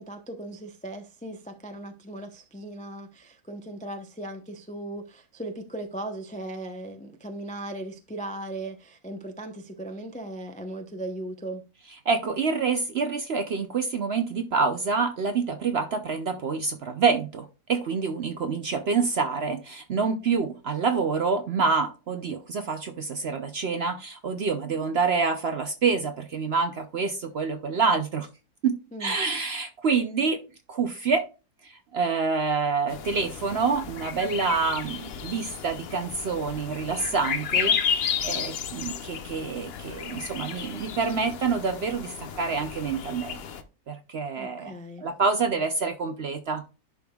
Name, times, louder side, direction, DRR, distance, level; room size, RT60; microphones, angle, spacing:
voice 1, 0.0-11.6 28.9-29.1 44.4-45.1, right 1 dB, 10° left, 0.3 m, -38 dB
voice 2, 12.1-28.3 28.6-30.4 30.7-31.2 31.6-43.4 43.9-46.6, right 5 dB, 55° right, 0.7 m, -27 dB
sound 1, 32.9-43.6, left 7 dB, 55° left, 0.7 m, -32 dB
11.0 x 5.2 x 2.3 m
omnidirectional pair, 1.7 m